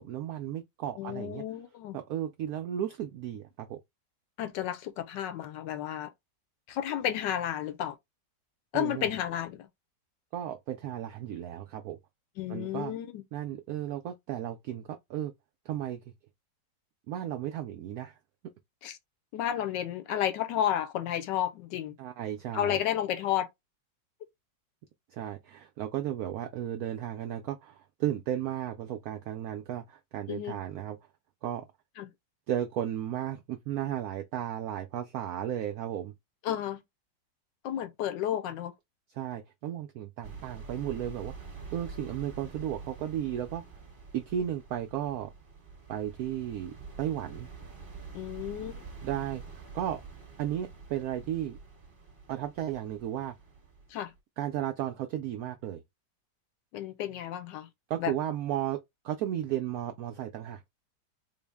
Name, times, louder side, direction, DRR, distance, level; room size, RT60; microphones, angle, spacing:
voice 1, 0.0-1.4 1.9-3.8 8.7-9.1 10.3-12.0 12.5-12.9 13.3-15.3 15.7-16.0 17.1-18.1 22.0-22.8 25.1-31.0 31.4-31.6 32.5-36.1 39.2-41.3 41.7-43.6 44.1-45.3 45.9-47.5 49.0-49.4 49.7-50.0 50.4-51.6 52.3-53.4 54.4-55.8 57.9-58.8 59.0-60.7, right 11 dB, 70° right, 0.9 m, -34 dB
voice 2, 1.0-2.0 4.4-6.1 6.7-8.0 8.7-9.7 12.4-13.2 18.8-19.0 19.3-21.9 22.5-23.5 30.3-30.6 32.0-32.1 36.4-36.8 37.6-38.7 48.1-48.8 53.9-54.1 56.7-57.7 58.0-58.1, left 11 dB, 80° left, 1.3 m, -32 dB
sound 1, 40.2-54.2, right 4 dB, 30° right, 1.3 m, -46 dB
3.8 x 2.1 x 3.4 m
omnidirectional pair, 2.0 m